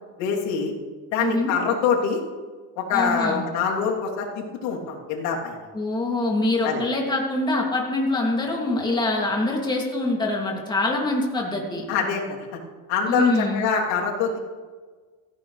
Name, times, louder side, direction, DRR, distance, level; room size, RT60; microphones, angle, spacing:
voice 1, 0.2-0.7 1.1-2.2 2.8-5.6 6.6-6.8 11.9-12.5 12.9-14.4, left 6 dB, 80° left, -2 dB, 3.5 m, -24 dB
voice 2, 1.2-1.5 2.9-3.5 5.7-11.9 13.1-13.6, left 2 dB, 10° left, -1 dB, 2.8 m, -24 dB
17.0 x 15.0 x 3.4 m, 1.5 s
cardioid pair, 145°, 39 cm